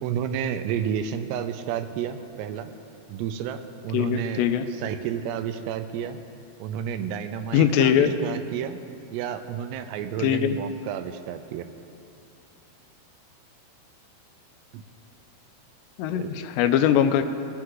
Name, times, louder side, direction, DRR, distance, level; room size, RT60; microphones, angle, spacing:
voice 1, 0.0-2.7 3.1-6.2 6.6-8.8 9.1-11.7 14.7-14.8 16.1-16.5, right 8 dB, 85° right, 8 dB, 2.7 m, -31 dB
voice 2, 3.9-4.6 7.5-8.1 10.2-10.6 16.0-17.2, left 9 dB, 85° left, 9 dB, 2.8 m, -21 dB
19.5 x 8.8 x 3.7 m, 2.5 s
omnidirectional pair, 4.9 m